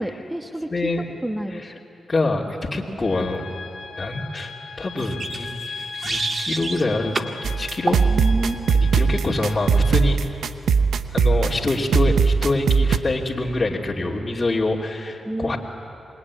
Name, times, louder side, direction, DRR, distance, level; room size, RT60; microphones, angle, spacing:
voice 1, 0.0-0.9 1.2-1.7 8.0-8.6 15.2-15.6, right 1 dB, 15° right, 4 dB, 1.7 m, -29 dB
voice 2, 0.7-1.1 1.5-1.7 2.1-3.4 4.0-5.5 6.0-8.0 8.7-10.2 11.1-15.6, left 2 dB, 35° left, -5 dB, 2.9 m, -25 dB
sound 1, 3.0-9.9, left 5 dB, 70° left, 1.8 m, -38 dB
sound 2, 5.0-6.8 7.1-7.4 7.9-8.1, right 3 dB, 45° right, 1.8 m, -28 dB
sound 3, 7.4-13.0, right 5 dB, 80° right, 0.9 m, -20 dB
27.0 x 22.0 x 9.8 m, 2.7 s
supercardioid pair, 50°, 0 cm